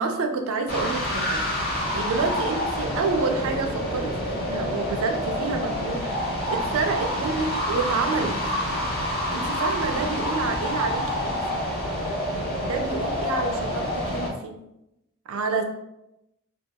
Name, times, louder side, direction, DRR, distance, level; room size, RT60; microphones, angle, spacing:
voice 1, 0.0-6.1 6.5-8.3 9.3-11.6 12.6-14.6 15.3-15.6, right 4 dB, 75° right, 5 dB, 0.4 m, -28 dB
sound 1, 0.7-14.3, equal, 45° left, 0.6 m, -27 dB
2.2 x 2.2 x 2.7 m, 0.86 s
head